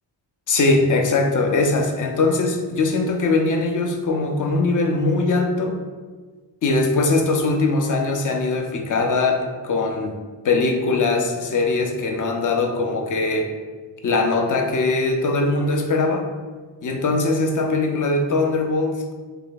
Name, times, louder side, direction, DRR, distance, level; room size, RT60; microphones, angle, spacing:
voice 1, 0.5-5.8 6.6-10.2 10.4-13.5 14.0-16.3 16.8-19.1, left 3 dB, 45° left, 3 dB, 0.5 m, -21 dB
3.2 x 2.7 x 3.8 m, 1.4 s
wide cardioid pair, 115°, 46 cm